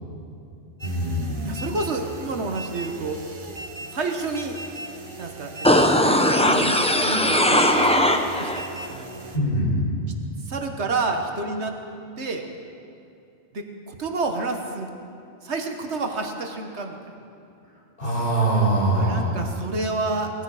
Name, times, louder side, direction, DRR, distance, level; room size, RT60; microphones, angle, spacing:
voice 1, 0.8-1.6 9.3-9.9 18.0-19.4, right 1 dB, 40° left, -5 dB, 3.9 m, -23 dB
sound 1, 0.8-9.4, right 1 dB, 25° right, 0.9 m, -39 dB
voice 2, 1.4-3.2 3.9-4.6 5.2-9.3 10.5-11.8 12.2-12.4 13.5-14.9 15.4-17.0 18.9-20.3, right 3 dB, 75° right, 4 dB, 1.6 m, -29 dB
sound 2, 5.6-8.6 9.0-9.1, left 1 dB, 5° left, 0.6 m, -19 dB
19.0 x 14.5 x 4.9 m, 2.6 s
omnidirectional pair, 1.2 m